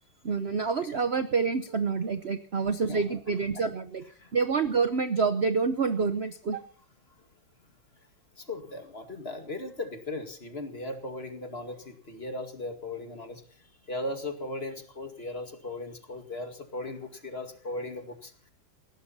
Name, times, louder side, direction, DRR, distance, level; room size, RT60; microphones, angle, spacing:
voice 1, 0.2-4.0 4.3-6.6, right 5 dB, 45° right, 11 dB, 0.9 m, -27 dB
voice 2, 8.4-18.5, left 2 dB, 30° left, 6 dB, 2.3 m, -38 dB
20.0 x 17.0 x 4.2 m, 0.43 s
omnidirectional pair, 2.1 m